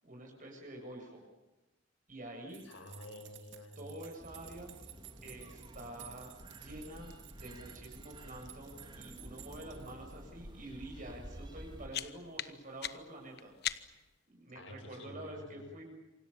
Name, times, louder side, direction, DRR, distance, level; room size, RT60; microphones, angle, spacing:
voice 1, 0.0-1.2 2.1-2.6 3.8-4.7 5.2-13.5 13.8-14.0 14.3-15.8, right 1 dB, 40° right, 1 dB, 7.6 m, -48 dB
sound 1, 2.5-10.2, right 14 dB, 70° right, 2.5 m, -55 dB
voice 2, 2.6-3.9 14.6-15.7, left 1 dB, 85° left, 6 dB, 5.3 m, -50 dB
sound 2, 4.2-11.9, equal, 25° right, 2.7 m, -51 dB
sound 3, 11.5-14.2, left 11 dB, 55° left, 1.1 m, -41 dB
28.0 x 26.0 x 7.2 m, 1.1 s
head